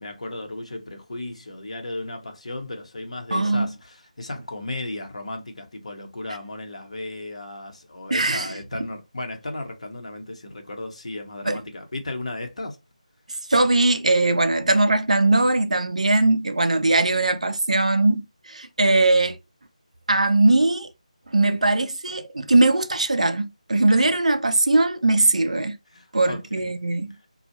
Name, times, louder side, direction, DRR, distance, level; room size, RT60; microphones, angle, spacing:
voice 1, 0.0-12.8 25.9-26.7, left 2 dB, 55° left, 0.9 m, -35 dB
voice 2, 3.3-3.7 8.1-8.5 11.5-11.6 13.5-19.4 20.1-20.9 21.3-25.8 26.1-27.1, right 2 dB, 60° right, 0.5 m, -20 dB
4.2 x 2.3 x 2.8 m
figure-of-eight pair, 160°, 4 cm